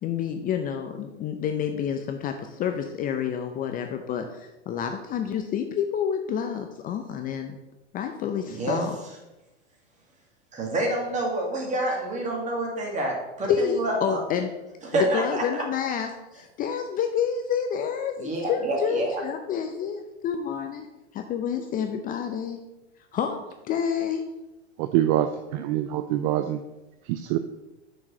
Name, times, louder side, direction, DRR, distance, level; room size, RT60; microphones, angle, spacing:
voice 1, 0.0-7.6 7.9-9.0 13.5-14.5 14.9-20.9 21.1-22.6 23.1-23.4 23.6-24.2, left 7 dB, 25° left, 6 dB, 0.5 m, -28 dB
voice 2, 8.5-8.8 10.5-14.2 14.8-15.6 18.2-19.2, right 2 dB, 20° right, 0 dB, 2.2 m, -28 dB
voice 3, 24.8-26.6 27.1-27.4, right 12 dB, 45° right, 9 dB, 0.5 m, -25 dB
6.2 x 4.6 x 6.3 m, 1.0 s
hypercardioid pair, 120°, 32 cm